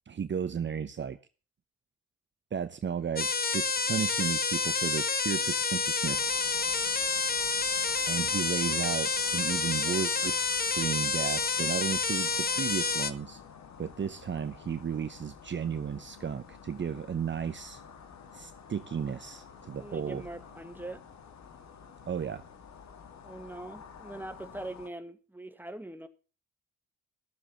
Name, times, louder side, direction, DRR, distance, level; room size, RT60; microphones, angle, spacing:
voice 1, 0.1-1.2 2.5-6.3 8.1-13.4 13.8-17.8 18.3-20.2 22.1-22.4, right 7 dB, 35° right, 0.9 m, -34 dB
sound 1, 3.2-13.1, left 4 dB, 30° left, 1.3 m, -29 dB
sound 2, 6.0-24.9, left 6 dB, 60° left, 2.1 m, -51 dB
voice 2, 19.8-21.0 23.2-26.1, right 1 dB, 5° right, 1.9 m, -42 dB
13.0 x 7.4 x 7.3 m
hypercardioid pair, 45°, 31 cm